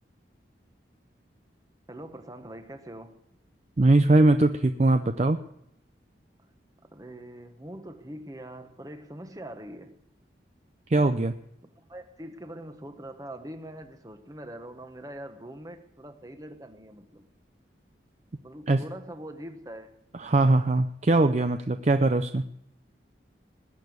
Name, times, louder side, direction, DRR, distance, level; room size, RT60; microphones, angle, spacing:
voice 1, 1.9-3.2 6.8-10.0 11.8-17.3 18.4-20.0, right 1 dB, 20° right, 1.1 m, -43 dB
voice 2, 3.8-5.4 10.9-11.3 18.7-18.8 20.2-22.5, right 2 dB, 35° right, 0.5 m, -21 dB
19.5 x 6.9 x 9.5 m
head